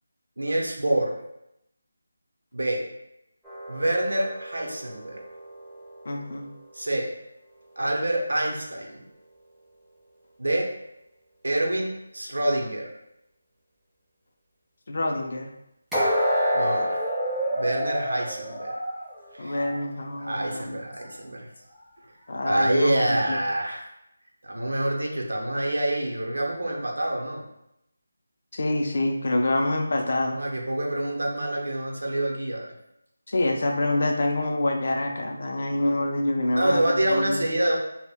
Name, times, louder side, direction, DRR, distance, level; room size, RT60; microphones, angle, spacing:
voice 1, 0.4-1.1 2.5-2.8 3.7-5.2 6.7-7.1 7.8-9.0 10.4-10.7 11.4-12.9 16.5-17.0 17.5-18.7 19.3-19.6 20.2-21.5 22.4-23.8 24.4-27.4 30.3-32.7 36.6-37.8, right 1 dB, 85° right, 0 dB, 0.6 m, -26 dB
sound 1, 3.4-6.6 15.9-19.8 20.2-20.4 21.0-21.1, equal, ahead, 0.4 m, -29 dB
voice 2, 6.1-6.5 14.9-15.5 19.4-20.8 22.3-23.4 28.5-30.4 33.3-37.5, left 1 dB, 55° left, 2 dB, 0.4 m, -26 dB
2.1 x 2.1 x 3.4 m, 0.83 s
figure-of-eight pair, 165°, 0 cm